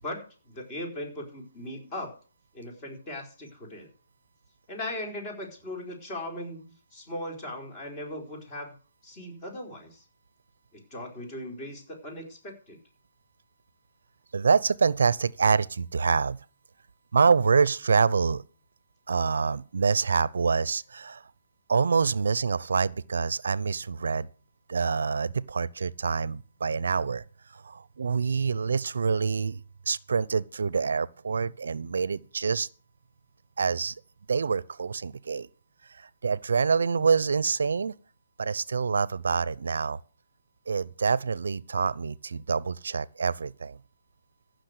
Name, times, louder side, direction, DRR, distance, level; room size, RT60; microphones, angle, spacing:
voice 1, 0.0-2.1 2.5-3.9 4.7-8.7 9.0-10.0 10.7-12.8, left 1 dB, 25° left, 4.4 m, -38 dB
voice 2, 14.3-16.4 17.1-18.4 19.1-21.2 21.7-24.3 24.7-27.2 27.5-32.7 33.6-34.0 34.3-35.5 35.9-37.9 38.4-40.0 40.7-43.8, right 5 dB, 75° right, 0.6 m, -26 dB
15.0 x 6.4 x 8.0 m
hypercardioid pair, 160°, 0 cm